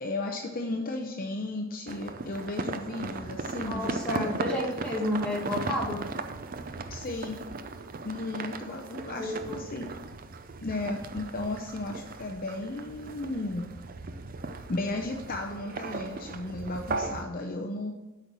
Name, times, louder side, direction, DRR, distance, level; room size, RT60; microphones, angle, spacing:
voice 1, 0.0-4.4 6.9-7.4 8.0-9.9 10.6-13.7 14.7-17.9, left 2 dB, 40° left, 2 dB, 0.7 m, -34 dB
sound 1, 1.9-17.2, right 3 dB, 40° right, 0.5 m, -37 dB
voice 2, 3.7-6.0 9.1-9.6, left 1 dB, 5° left, -4 dB, 1.9 m, -31 dB
8.3 x 5.5 x 6.1 m, 1.1 s
head